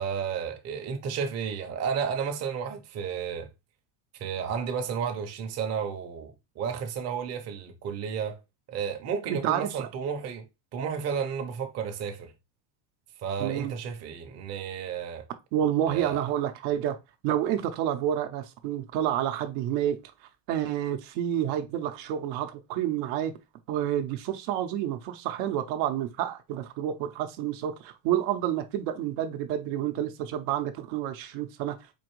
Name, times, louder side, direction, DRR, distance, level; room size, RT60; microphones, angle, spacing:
voice 1, 0.0-3.5 4.2-8.4 8.7-10.5 10.7-12.3 13.2-15.2 15.9-16.2, right 7 dB, 35° right, 0.6 m, -32 dB
voice 2, 9.3-9.9 13.4-13.7 15.5-17.0 17.2-20.0 20.5-23.3 23.7-31.8, right 11 dB, 75° right, 0.7 m, -29 dB
4.4 x 2.5 x 3.0 m
cardioid pair, 145°, 47 cm